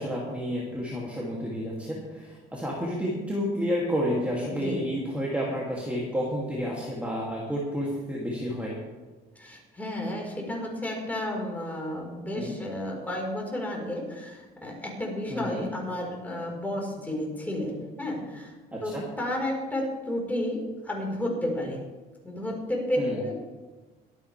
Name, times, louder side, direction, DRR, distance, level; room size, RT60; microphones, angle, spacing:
voice 1, 0.0-8.8 12.3-12.6 15.3-15.7 18.7-19.1 23.0-23.2, equal, 10° right, -5 dB, 2.6 m, -30 dB
voice 2, 4.5-4.8 9.3-18.5 18.8-21.8 22.2-23.4, left 1 dB, 10° left, -1 dB, 4.5 m, -32 dB
23.5 x 9.2 x 3.4 m, 1.2 s
cardioid pair, 120°, 18 cm